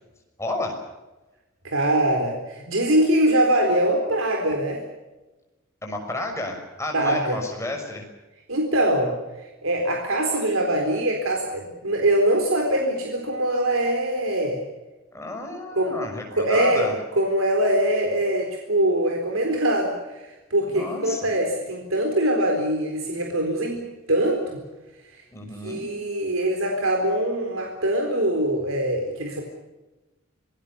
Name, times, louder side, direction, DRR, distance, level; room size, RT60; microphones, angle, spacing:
voice 1, 0.4-0.8 5.8-8.1 15.1-17.0 20.7-21.3 25.3-25.9, left 2 dB, 15° left, 2 dB, 6.0 m, -31 dB
voice 2, 1.6-4.8 6.9-7.4 8.5-9.2 9.6-14.6 15.7-15.9 16.3-16.9 17.2-19.9 20.5-24.6 25.6-29.4, right 1 dB, 80° right, 2 dB, 4.1 m, -23 dB
26.5 x 20.0 x 6.9 m, 1.1 s
head